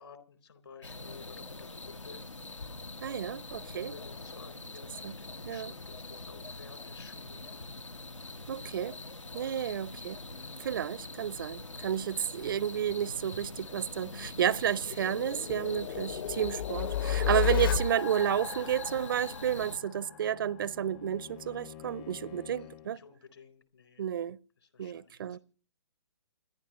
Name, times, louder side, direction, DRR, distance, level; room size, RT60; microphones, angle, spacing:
voice 1, 0.0-2.3 3.5-7.7 9.6-9.8 10.4-10.6 12.1-12.3 22.5-24.1 24.6-25.4, left 5 dB, 60° left, 3.8 m, -54 dB
sound 1, 0.8-19.8, left 2 dB, 80° left, 1.3 m, -44 dB
voice 2, 3.0-3.9 5.0-5.1 5.4-5.7 8.5-9.0 9.3-10.2 10.6-23.0 24.0-24.4 24.8-25.4, right 9 dB, 45° right, 0.6 m, -31 dB
sound 2, 13.8-20.6, left 8 dB, 45° left, 1.0 m, -34 dB
Bowed string instrument, 19.2-23.0, left 11 dB, 20° left, 0.7 m, -50 dB
28.5 x 11.5 x 3.0 m
figure-of-eight pair, 130°, 16 cm